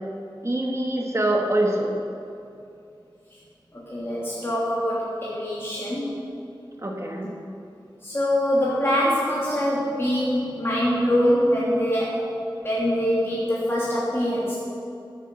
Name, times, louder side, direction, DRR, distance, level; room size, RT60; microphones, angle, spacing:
voice 1, 0.4-1.9 6.8-7.3, right 1 dB, 35° right, 0 dB, 2.0 m, -24 dB
voice 2, 3.9-6.1 8.0-12.2 12.6-14.6, equal, 30° left, -8 dB, 3.1 m, -24 dB
12.5 x 8.6 x 7.0 m, 2.6 s
wide cardioid pair, 65°, 9 cm